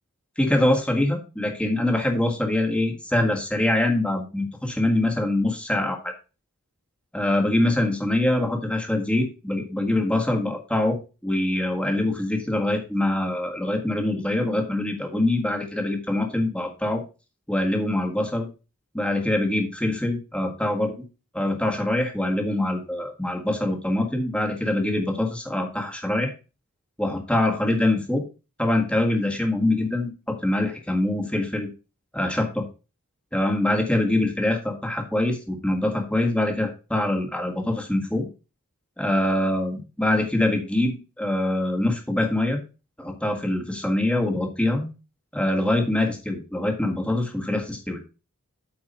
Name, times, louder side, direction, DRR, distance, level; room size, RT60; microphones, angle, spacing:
voice 1, 0.4-6.1 7.1-11.0 11.2-17.0 17.5-18.5 18.9-20.9 21.3-26.3 27.0-28.2 28.6-31.7 32.1-32.6 33.3-38.2 39.0-42.6 43.0-44.9 45.3-48.0, left 1 dB, 5° left, 2 dB, 1.7 m, -24 dB
8.5 x 4.6 x 5.4 m, 0.31 s
head